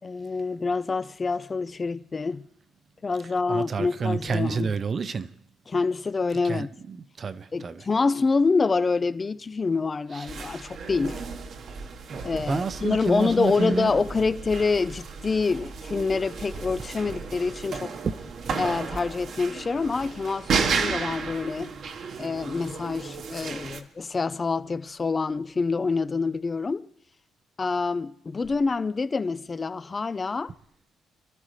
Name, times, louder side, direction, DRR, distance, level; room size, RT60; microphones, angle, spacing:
voice 1, 0.0-2.4 3.0-4.7 5.7-6.7 7.5-11.2 12.2-18.0 18.6-21.7 22.2-26.9 27.6-30.5, left 4 dB, 25° left, 0.5 m, -26 dB
voice 2, 3.5-5.3 6.4-7.8 10.1-10.4 12.1-14.0 18.0-18.1, right 5 dB, 40° right, 0.8 m, -29 dB
sound 1, 10.3-23.8, right 5 dB, 60° right, 1.4 m, -33 dB
26.5 x 13.0 x 3.3 m
cardioid pair, 110°, 0 cm